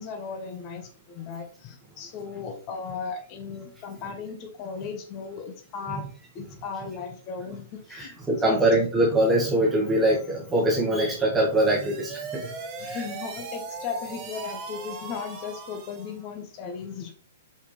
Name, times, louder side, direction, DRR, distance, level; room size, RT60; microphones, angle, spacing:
voice 1, 0.0-6.0 6.3-8.6 12.8-17.1, left 6 dB, 35° left, 5 dB, 1.5 m, -36 dB
voice 2, 8.0-12.4 12.9-13.0, right 1 dB, 10° right, -4 dB, 1.9 m, -23 dB
sound 1, 11.4-16.2, right 4 dB, 30° right, 1.4 m, -38 dB
5.8 x 5.7 x 3.4 m, 0.41 s
figure-of-eight pair, 110°, 0 cm